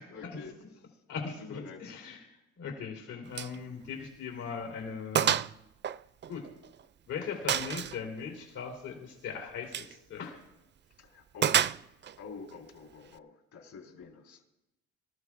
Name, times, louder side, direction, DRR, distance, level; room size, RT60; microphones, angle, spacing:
voice 1, 0.0-1.0 1.4-2.0 11.0-11.7 12.2-14.4, left 5 dB, 75° left, 1 dB, 4.1 m, -47 dB
voice 2, 1.1-1.4 1.8-2.2 2.6-5.4 6.3-6.5 7.1-10.4, left 6 dB, 90° left, 1 dB, 3.4 m, -39 dB
Gunshot gunfire, 3.4-3.6 3.9-4.0 4.5-4.6 5.2-5.5 5.8-6.8 7.5-8.0 9.6-9.9 11.4-12.2, right 9 dB, 40° right, 0.4 m, -28 dB
25.5 x 14.5 x 2.5 m, 0.93 s
cardioid pair, 90°, 30 cm